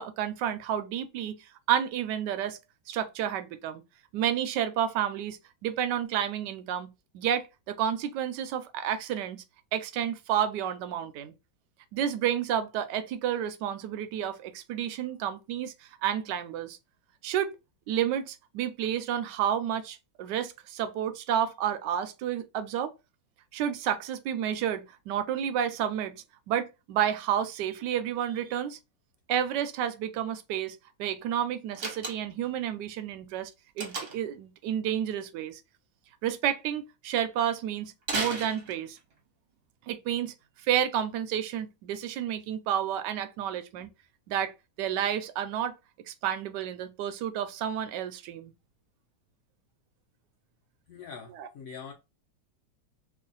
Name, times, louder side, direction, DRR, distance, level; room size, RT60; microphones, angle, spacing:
voice 1, 0.0-2.6 2.9-3.8 4.1-9.4 9.7-11.3 11.9-16.8 17.2-17.5 17.9-22.9 23.5-26.2 26.5-28.8 29.3-33.5 33.8-35.6 36.2-39.0 39.9-40.3 40.6-43.9 44.3-44.5 44.8-45.7 46.1-48.5 51.3-51.5, right 10 dB, 75° right, 1.1 m, -30 dB
Slam, 31.7-32.5 33.8-34.4 38.0-39.1, right 3 dB, 45° right, 0.8 m, -34 dB
voice 2, 50.9-51.9, left 6 dB, 65° left, 0.8 m, -43 dB
3.1 x 2.3 x 3.9 m
omnidirectional pair, 2.1 m